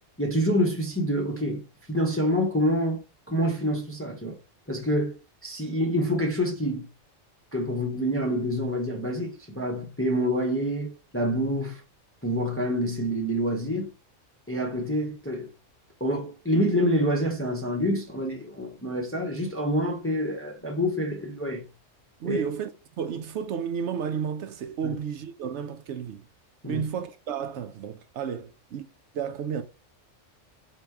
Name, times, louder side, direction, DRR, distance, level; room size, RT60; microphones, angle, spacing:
voice 1, 0.2-1.6 1.9-4.4 4.7-6.9 7.5-11.8 12.2-13.9 14.5-15.5 16.0-21.6 22.2-22.4 24.8-25.0 26.6-26.9, equal, 15° left, 0.6 m, -27 dB
voice 2, 22.2-22.7 23.0-26.2 26.6-28.9 29.1-29.6, right 7 dB, 70° right, 0.8 m, -32 dB
4.4 x 2.9 x 3.4 m
omnidirectional pair, 1.3 m